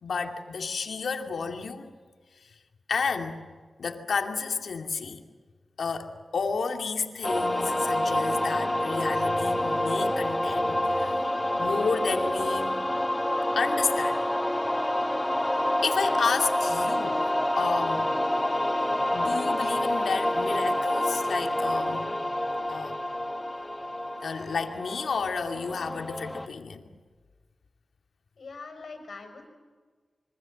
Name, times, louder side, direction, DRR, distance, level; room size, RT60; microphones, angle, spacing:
voice 1, 0.0-1.9 2.4-2.5 2.9-3.4 3.8-5.2 5.8-11.2 11.6-12.8 13.5-14.2 15.8-17.2 17.6-18.1 19.1-22.1 22.7-23.0 24.2-26.9, left 5 dB, 85° left, 2.5 m, -31 dB
sound 1, 7.2-26.5, left 1 dB, 10° left, 1.0 m, -27 dB
voice 2, 28.4-29.5, left 4 dB, 65° left, 5.7 m, -43 dB
27.0 x 24.5 x 7.7 m
wide cardioid pair, 110°, 0 cm